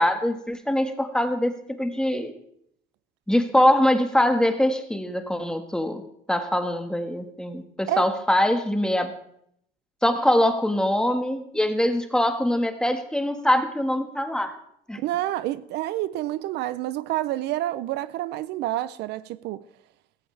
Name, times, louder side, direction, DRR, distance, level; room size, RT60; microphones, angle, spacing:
voice 1, 0.0-2.3 3.3-6.0 6.3-9.1 10.0-14.5 14.9-15.0, left 1 dB, 5° left, 1.6 m, -23 dB
voice 2, 15.0-19.6, right 14 dB, 85° right, 0.6 m, -28 dB
15.5 x 15.0 x 3.4 m
cardioid pair, 110°, 17 cm